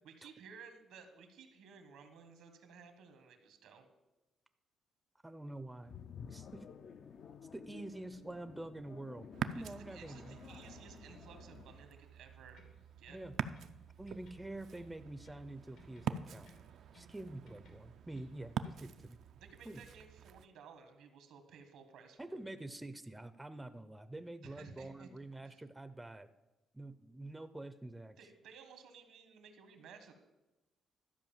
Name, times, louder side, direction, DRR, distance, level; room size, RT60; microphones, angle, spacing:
voice 1, 0.0-3.8 9.5-12.6 13.0-13.2 19.4-22.4 24.4-25.1 25.4-25.6 28.2-30.1, right 6 dB, 85° right, 7 dB, 1.6 m, -56 dB
voice 2, 5.2-5.9 6.3-6.6 7.5-9.3 9.5-10.4 13.1-13.3 14.0-16.5 16.9-19.2 19.6-19.8 22.2-26.3 26.7-28.2, right 2 dB, 10° right, 11 dB, 0.5 m, -47 dB
sound 1, 5.9-11.9, left 7 dB, 55° left, 0.5 m, -53 dB
Ocean, 9.3-20.5, right 8 dB, 70° right, 0.4 m, -45 dB
sound 2, 12.5-13.8 14.1-15.5 15.8-17.2 17.5-18.9, left 2 dB, 85° left, 2.5 m, -63 dB
12.5 x 4.9 x 7.3 m, 1.0 s
cardioid pair, 115°, 0 cm